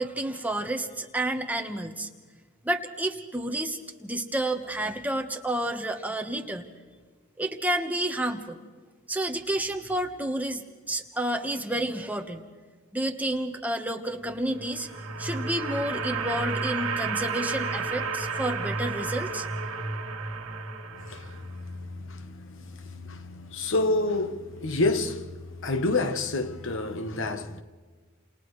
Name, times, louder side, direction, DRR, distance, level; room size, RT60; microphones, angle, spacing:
voice 1, 0.0-2.1 2.6-6.7 7.4-8.6 9.1-12.4 12.9-14.9 15.2-19.5, right 1 dB, 5° right, 1.2 m, -30 dB
sound 1, 14.4-21.6, right 4 dB, 75° right, 1.6 m, -32 dB
voice 2, 21.0-25.3 25.6-27.6, left 2 dB, 60° left, 1.1 m, -29 dB
30.0 x 28.5 x 3.2 m
head